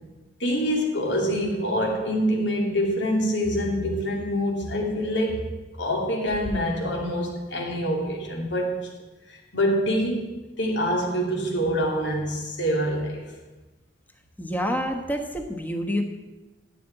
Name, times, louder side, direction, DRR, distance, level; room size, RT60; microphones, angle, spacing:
voice 1, 0.4-5.5 5.8-8.9 9.3-10.3 10.6-13.3, equal, 75° left, 0 dB, 2.5 m, -25 dB
voice 2, 14.4-16.0, equal, 10° left, 4 dB, 1.2 m, -27 dB
14.0 x 5.2 x 8.9 m, 1.1 s
head